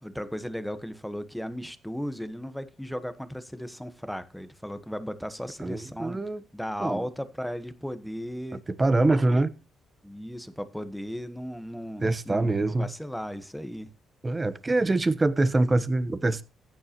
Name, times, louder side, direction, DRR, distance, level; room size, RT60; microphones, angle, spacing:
voice 1, 0.0-6.2 6.5-8.6 10.0-13.9, equal, ahead, 1.3 m, -36 dB
voice 2, 5.6-6.4 6.8-7.0 8.8-9.5 12.0-12.9 14.2-16.4, right 2 dB, 20° right, 1.1 m, -24 dB
15.0 x 9.7 x 3.0 m
cardioid pair, 90°, 0 cm